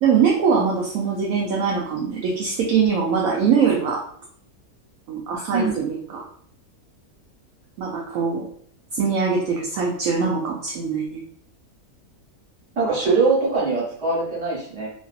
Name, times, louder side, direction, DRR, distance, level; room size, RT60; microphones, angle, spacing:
voice 1, 0.0-4.0 5.1-6.2 7.8-8.5 8.9-11.2, right 6 dB, 75° right, -2 dB, 1.0 m, -22 dB
voice 2, 12.7-14.9, right 4 dB, 50° right, -5 dB, 1.5 m, -22 dB
3.0 x 2.7 x 2.3 m, 0.64 s
omnidirectional pair, 1.6 m